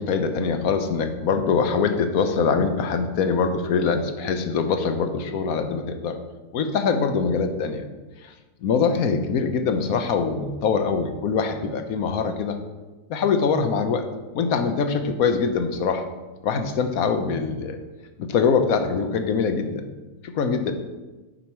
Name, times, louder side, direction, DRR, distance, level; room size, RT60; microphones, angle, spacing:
voice 1, 0.0-6.2 6.5-7.8 8.2-8.3 8.6-12.6 13.1-14.0 14.3-16.0 16.4-17.8 18.2-19.9 20.2-20.7, left 5 dB, 70° left, 7 dB, 1.2 m, -23 dB
9.3 x 6.3 x 4.5 m, 1.2 s
omnidirectional pair, 1.7 m